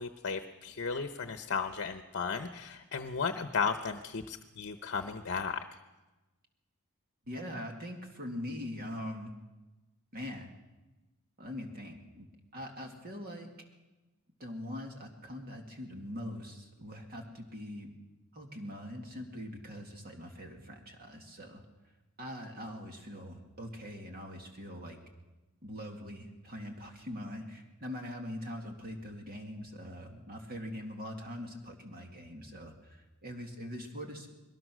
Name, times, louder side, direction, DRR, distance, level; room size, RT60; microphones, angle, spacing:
voice 1, 0.0-5.6, left 5 dB, 55° left, 8 dB, 0.9 m, -35 dB
voice 2, 7.3-9.3 10.1-10.5 11.4-12.3 12.5-13.5 14.4-17.9 18.3-21.6 22.2-25.0 25.6-34.3, left 1 dB, 45° right, 3 dB, 2.3 m, -42 dB
21.5 x 19.5 x 6.2 m, 1.1 s
head